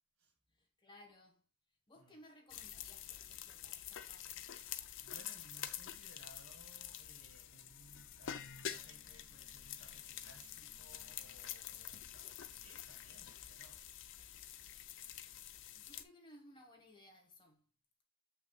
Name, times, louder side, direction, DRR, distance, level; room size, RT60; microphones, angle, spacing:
voice 1, 0.5-1.5 1.9-4.5 15.7-17.7, left 1 dB, 25° left, 1.4 m, -61 dB
sound 1, 2.5-16.0, left 10 dB, 65° left, 0.6 m, -48 dB
voice 2, 5.0-13.9, right 2 dB, 80° right, 1.7 m, -63 dB
sound 2, 8.2-12.9, right 4 dB, 30° right, 4.1 m, -73 dB
7.5 x 5.9 x 2.3 m
head